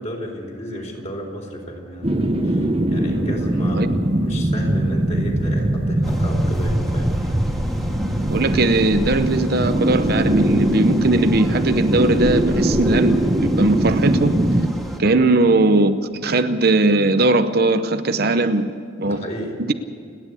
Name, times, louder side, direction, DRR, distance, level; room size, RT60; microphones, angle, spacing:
voice 1, 0.0-7.1 15.0-15.2 19.0-19.6, equal, 35° left, 1 dB, 4.4 m, -33 dB
sound 1, 2.0-14.7, right 1 dB, 30° right, 1.2 m, -21 dB
sound 2, 6.0-15.0, equal, ahead, 1.8 m, -31 dB
voice 2, 8.3-14.3 15.0-15.9 16.2-18.6 19.0-19.2 19.6-19.7, right 2 dB, 55° right, 9 dB, 0.8 m, -19 dB
30.0 x 10.5 x 8.4 m, 2.4 s
head